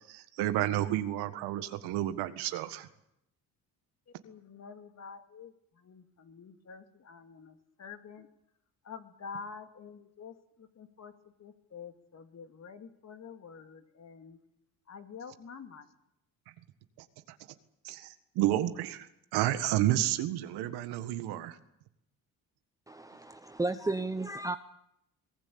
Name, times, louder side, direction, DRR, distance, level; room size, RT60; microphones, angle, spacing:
voice 1, 0.1-2.9 17.0-17.4 17.8-21.6, right 13 dB, 85° right, 10 dB, 1.7 m, -31 dB
voice 2, 4.2-8.3 8.8-14.4 14.9-15.9, left 6 dB, 45° left, 7 dB, 2.6 m, -48 dB
voice 3, 22.9-24.6, right 2 dB, 10° right, 9 dB, 0.8 m, -33 dB
23.0 x 19.0 x 8.7 m, 0.81 s
cardioid pair, 95°, 38 cm